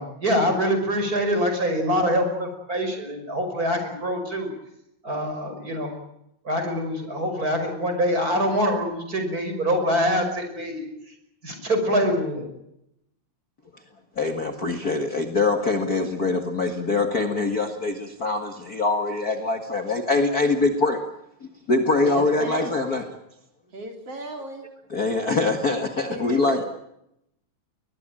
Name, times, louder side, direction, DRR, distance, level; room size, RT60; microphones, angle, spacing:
voice 1, 0.0-4.5 5.0-5.9 6.4-11.1 11.4-12.5, equal, 30° right, 6 dB, 6.0 m, -24 dB
voice 2, 14.2-21.0 21.7-23.1 24.9-26.6, left 3 dB, 35° left, 6 dB, 2.0 m, -23 dB
voice 3, 22.0-23.0 23.7-24.7 26.1-26.7, right 1 dB, 50° right, 4 dB, 4.3 m, -35 dB
21.5 x 21.5 x 8.9 m, 0.80 s
omnidirectional pair, 3.4 m